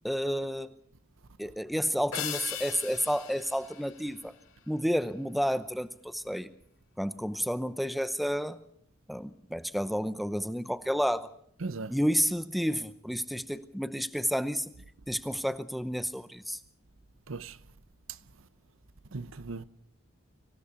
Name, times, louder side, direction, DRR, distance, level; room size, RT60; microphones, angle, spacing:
voice 1, 0.0-0.7 1.4-4.3 4.7-6.5 7.0-8.6 9.1-11.3 11.9-14.7 15.1-16.6, equal, ahead, 0.8 m, -30 dB
sound 1, 2.1-4.8, left 9 dB, 80° left, 3.9 m, -39 dB
voice 2, 11.6-11.9 17.3-17.6 19.1-19.6, right 3 dB, 75° right, 0.8 m, -37 dB
25.5 x 16.5 x 7.0 m
head